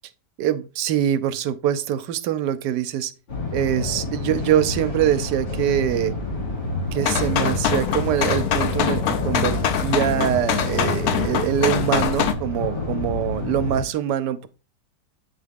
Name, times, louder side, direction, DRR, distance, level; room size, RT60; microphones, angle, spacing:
voice 1, 0.4-3.1 3.5-6.1 6.9-14.5, right 10 dB, 85° right, 1.2 m, -24 dB
sound 1, 3.3-13.8, left 2 dB, 85° left, 3.0 m, -29 dB
sound 2, 7.0-12.3, left 8 dB, 70° left, 1.0 m, -24 dB
8.2 x 3.7 x 3.5 m
omnidirectional pair, 1.8 m